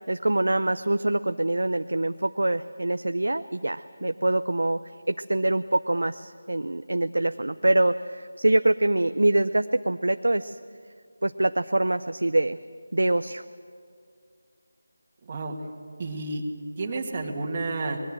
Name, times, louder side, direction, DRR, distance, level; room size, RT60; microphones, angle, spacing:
voice 1, 0.1-4.8 5.1-10.6 11.2-12.6 12.9-13.4, right 1 dB, 80° right, 10 dB, 0.6 m, -24 dB
voice 2, 15.2-15.6 16.0-16.4 16.8-18.0, right 3 dB, 30° right, 0 dB, 2.3 m, -30 dB
25.0 x 21.0 x 7.7 m, 2.2 s
figure-of-eight pair, 165°, 0 cm